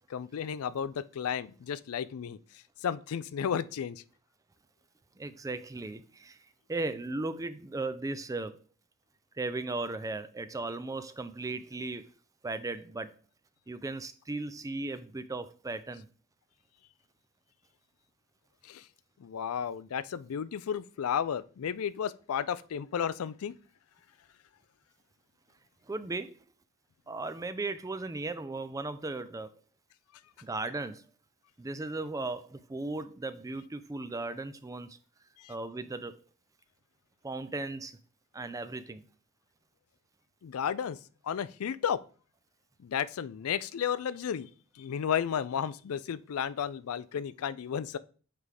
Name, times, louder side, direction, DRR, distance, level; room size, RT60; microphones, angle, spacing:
voice 1, 0.1-2.4 2.8-4.0 18.6-18.8 19.2-23.5 35.4-35.5 40.4-41.0 41.2-42.0 42.8-44.5 44.8-48.0, left 8 dB, 70° left, 0.4 m, -33 dB
voice 2, 5.2-6.4 6.7-8.6 9.4-12.1 12.4-13.1 13.7-16.1 25.9-26.4 27.1-29.5 30.4-31.0 31.6-35.0 35.5-36.2 37.2-38.0 38.3-39.0, right 2 dB, 15° right, 0.4 m, -36 dB
7.6 x 4.7 x 3.4 m
head